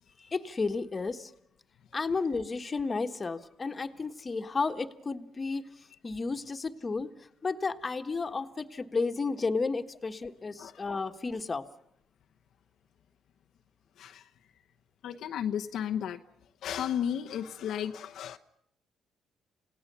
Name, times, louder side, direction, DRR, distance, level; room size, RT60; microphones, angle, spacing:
voice 1, 0.2-1.3 1.9-5.7 6.0-7.1 7.4-11.6, left 4 dB, 30° left, 7 dB, 1.5 m, -32 dB
voice 2, 14.0-14.3 15.0-16.2 16.6-18.4, left 9 dB, 75° left, 6 dB, 1.0 m, -33 dB
28.5 x 17.5 x 6.9 m, 0.74 s
cardioid pair, 90°, 0 cm